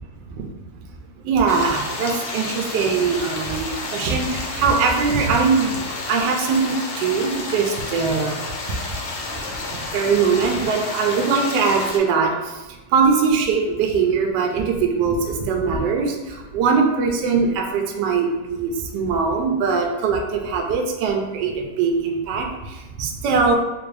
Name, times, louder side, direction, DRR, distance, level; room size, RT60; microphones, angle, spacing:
voice 1, 1.2-5.8 6.1-8.4 9.9-12.3 12.9-22.5 23.0-23.6, right 5 dB, 75° right, 2 dB, 1.1 m, -21 dB
sound 1, 1.5-12.0, left 2 dB, 75° left, 0.7 m, -31 dB
3.8 x 2.6 x 3.2 m, 1.1 s
omnidirectional pair, 2.1 m